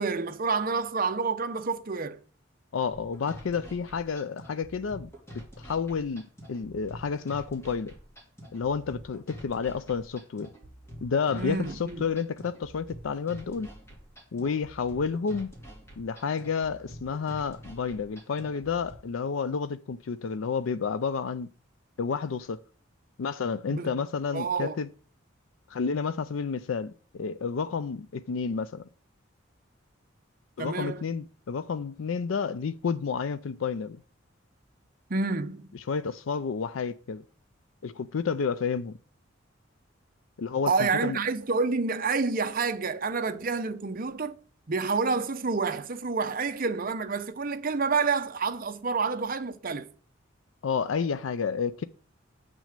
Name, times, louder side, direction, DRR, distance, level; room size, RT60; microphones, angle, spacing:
voice 1, 0.0-2.2 11.4-12.0 23.7-24.0 24.3-24.7 30.6-31.0 35.1-35.7 40.7-44.4 44.7-49.9, right 4 dB, 45° right, 0.8 m, -28 dB
voice 2, 2.7-5.1 5.6-7.9 8.5-10.5 11.0-13.7 14.3-15.5 16.0-21.5 22.0-22.6 23.2-24.9 25.7-28.9 30.6-34.0 35.9-37.2 37.8-39.0 40.4-41.2 50.6-51.8, left 5 dB, 80° left, 0.4 m, -30 dB
sound 1, 2.9-18.9, equal, 15° left, 2.7 m, -47 dB
7.6 x 6.2 x 6.6 m
head